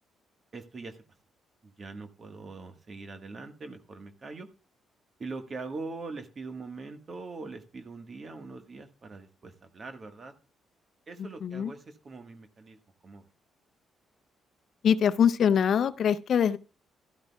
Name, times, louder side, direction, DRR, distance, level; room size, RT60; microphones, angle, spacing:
voice 1, 0.5-1.0 1.6-4.5 5.2-10.3 11.1-13.2, right 3 dB, 40° right, 1.4 m, -42 dB
voice 2, 11.4-11.7 14.8-16.6, left 8 dB, 60° left, 0.6 m, -23 dB
13.0 x 12.0 x 2.3 m
cardioid pair, 90°, 0 cm